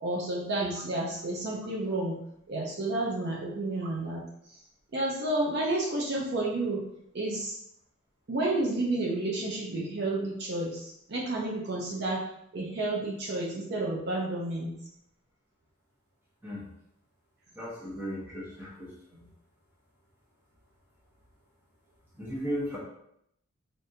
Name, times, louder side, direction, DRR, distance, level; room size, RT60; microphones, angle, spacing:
voice 1, 0.0-2.2 2.5-4.2 4.5-4.6 4.9-6.8 7.1-7.6 8.3-14.7, right 2 dB, 50° right, -3 dB, 0.6 m, -31 dB
voice 2, 17.6-19.2 22.2-22.8, equal, 10° right, -6 dB, 0.9 m, -36 dB
3.5 x 2.6 x 2.7 m, 0.75 s
head